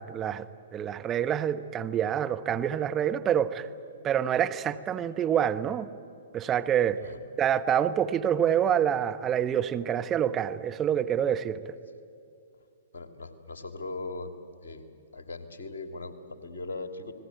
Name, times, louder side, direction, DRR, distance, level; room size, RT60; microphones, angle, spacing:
voice 1, 0.0-3.7 4.0-5.9 6.3-7.0 7.4-11.6, right 9 dB, 20° right, 8 dB, 1.1 m, -27 dB
voice 2, 12.9-14.3 14.6-14.8 15.1-17.1, left 3 dB, 65° left, 8 dB, 2.9 m, -39 dB
30.0 x 20.0 x 9.3 m, 2.5 s
figure-of-eight pair, 120°, 0 cm